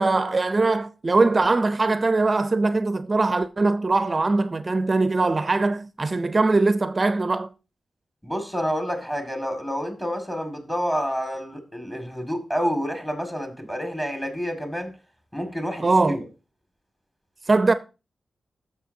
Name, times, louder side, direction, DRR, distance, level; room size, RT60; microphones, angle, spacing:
voice 1, 0.0-7.5 15.8-16.2 17.5-17.7, right 3 dB, 35° right, 0.5 m, -21 dB
voice 2, 8.2-14.9 15.3-16.2, equal, 10° left, 2.0 m, -28 dB
13.5 x 6.3 x 2.7 m
cardioid pair, 80°, 0 cm